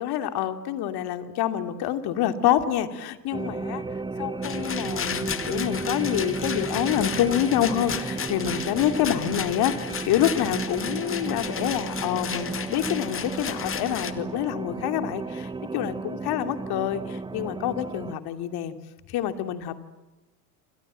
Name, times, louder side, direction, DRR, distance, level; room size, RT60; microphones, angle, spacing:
voice 1, 0.0-3.8 4.2-18.7 19.1-19.8, left 11 dB, 50° left, 8 dB, 2.9 m, -27 dB
sound 1, 3.3-18.1, right 3 dB, 10° right, 0.9 m, -33 dB
Rattle, 4.4-14.1, left 7 dB, 25° left, 2.2 m, -34 dB
28.5 x 26.5 x 7.6 m, 1.1 s
hypercardioid pair, 75°, 48 cm